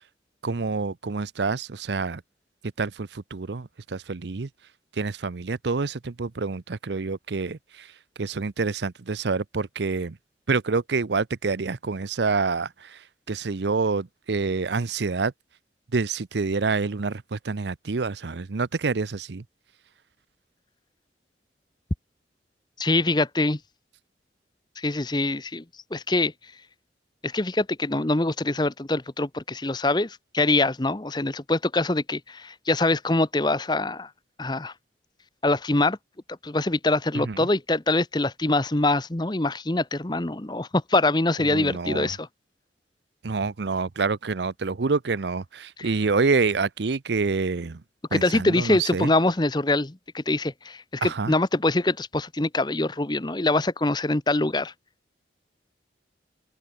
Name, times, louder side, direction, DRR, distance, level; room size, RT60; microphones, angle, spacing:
voice 1, 0.4-2.2 2.8-4.5 5.0-7.9 8.2-10.2 10.5-13.0 13.3-15.3 15.9-19.4 37.1-37.5 41.4-42.1 43.2-47.8 48.1-49.1 51.0-51.3, right 4 dB, 75° right, 0.7 m, -27 dB
voice 2, 22.8-23.6 24.8-25.6 25.9-26.3 27.2-34.1 34.4-34.7 35.4-36.0 36.4-42.3 45.8-45.9 48.1-54.7, left 2 dB, 25° left, 0.9 m, -24 dB
open air
head